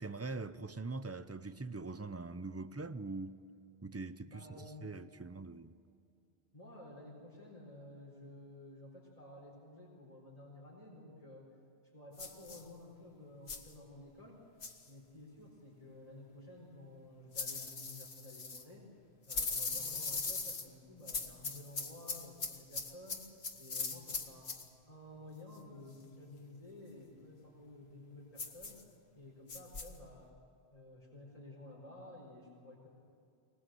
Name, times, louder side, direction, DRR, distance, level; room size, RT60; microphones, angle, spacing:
voice 1, 0.0-3.4 3.8-5.7, right 3 dB, 20° right, 0.5 m, -43 dB
voice 2, 4.3-4.9 6.5-11.4 11.9-14.4 14.8-18.8 19.3-23.2 23.6-24.5 24.9-28.8 29.1-30.3 30.7-32.9, left 1 dB, 35° left, 4.6 m, -53 dB
sound 1, 12.2-12.6 13.5-13.7 14.6-14.9 17.3-18.6 19.3-20.7 21.1-24.7 28.4-28.8 29.5-29.9, left 4 dB, 70° left, 1.8 m, -40 dB
24.5 x 20.0 x 7.8 m
omnidirectional pair, 1.1 m